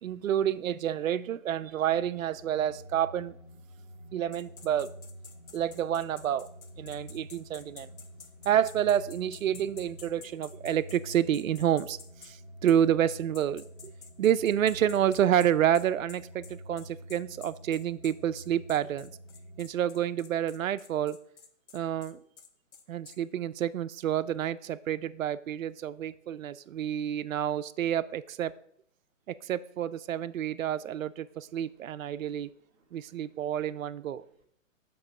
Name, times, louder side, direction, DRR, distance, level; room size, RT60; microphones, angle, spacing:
voice 1, 0.0-3.4 4.1-4.9 5.5-6.5 6.8-7.9 8.4-13.9 14.2-19.1 19.6-21.2 21.7-22.2 22.9-28.5 29.3-32.5 32.9-34.3, right 10 dB, 80° right, 0.6 m, -29 dB
sound 1, 1.9-19.7, equal, 35° left, 0.6 m, -48 dB
sound 2, 4.3-12.3 12.7-12.8 13.1-23.2, left 6 dB, 85° left, 1.1 m, -51 dB
voice 2, 31.3-33.9 34.2-34.4, right 2 dB, 10° right, 0.9 m, -69 dB
7.9 x 3.1 x 6.1 m
hypercardioid pair, 170°, 40 cm